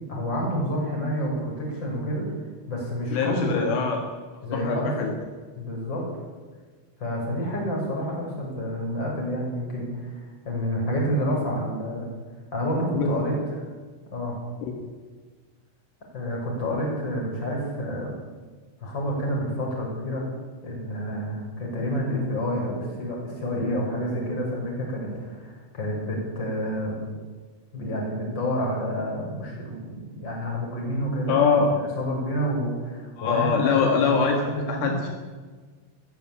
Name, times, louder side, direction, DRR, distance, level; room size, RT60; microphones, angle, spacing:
voice 1, 0.1-2.3 2.7-3.8 4.4-4.9 5.5-6.1 7.0-12.1 12.5-13.3 14.1-14.4 16.1-18.1 18.8-20.3 20.6-27.0 27.7-31.4 32.0-35.0, equal, 20° left, -1 dB, 6.8 m, -29 dB
voice 2, 3.1-4.0 4.5-5.2 13.0-13.1 14.6-14.8 31.3-31.7 33.2-35.1, left 5 dB, 70° left, 3 dB, 4.1 m, -23 dB
21.5 x 14.5 x 8.9 m, 1.4 s
omnidirectional pair, 6.0 m